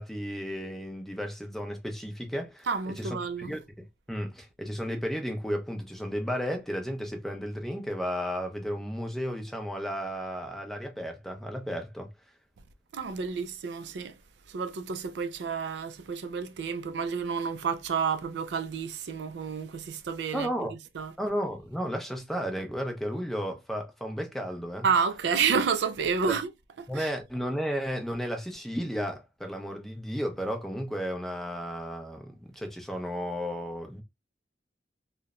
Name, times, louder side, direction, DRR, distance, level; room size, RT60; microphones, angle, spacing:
voice 1, 0.0-3.2 3.5-3.6 4.1-12.1 20.3-20.7 21.2-24.9 26.9-34.0, equal, ahead, 0.5 m, -33 dB
voice 2, 2.7-3.5 12.9-14.2 14.5-20.5 21.0-21.1 24.8-26.5 26.8-27.1, right 6 dB, 75° right, 0.4 m, -30 dB
2.8 x 2.1 x 2.3 m
head